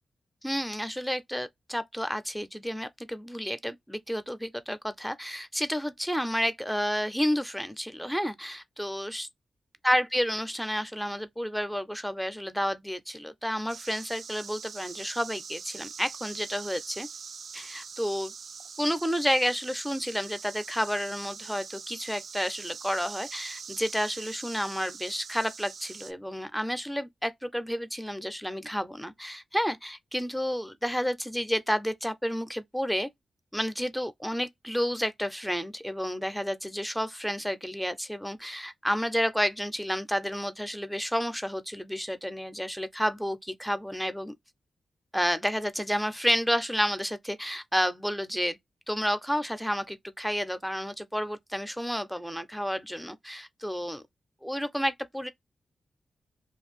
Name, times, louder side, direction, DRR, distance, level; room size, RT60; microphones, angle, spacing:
voice 1, 0.4-9.3 9.8-17.1 17.5-18.3 18.8-33.1 33.5-44.3 45.1-48.6 48.9-54.0 54.4-55.3, equal, ahead, 0.5 m, -30 dB
sound 1, 13.7-26.1, right 5 dB, 70° right, 0.3 m, -43 dB
2.5 x 2.3 x 3.4 m
cardioid pair, 70°, 0 cm